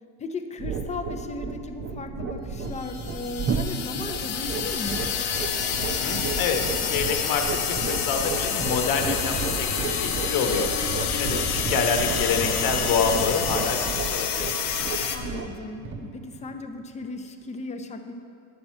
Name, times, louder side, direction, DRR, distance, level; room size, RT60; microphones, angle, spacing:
voice 1, 0.2-5.0 15.1-18.1, left 3 dB, 15° left, 6 dB, 0.5 m, -36 dB
sound 1, 0.6-17.0, right 4 dB, 30° right, 0.6 m, -33 dB
sound 2, 2.7-15.2, left 7 dB, 80° left, 1.0 m, -28 dB
voice 2, 5.9-10.7 11.1-14.5, left 5 dB, 55° left, 4 dB, 1.1 m, -27 dB
10.0 x 7.4 x 4.3 m, 2.4 s
supercardioid pair, 115°, 42 cm